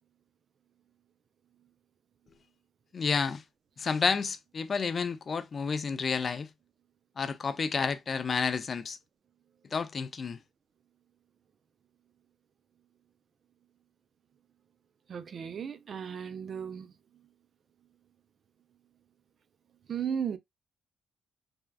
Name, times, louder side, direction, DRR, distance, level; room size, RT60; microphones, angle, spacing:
voice 1, 2.9-3.4 3.8-6.5 7.2-9.0 9.7-10.4, left 5 dB, 40° left, 0.4 m, -30 dB
voice 2, 15.1-16.9 19.9-20.4, right 7 dB, 50° right, 0.4 m, -35 dB
3.4 x 2.2 x 2.2 m
cardioid pair, 90°, 0 cm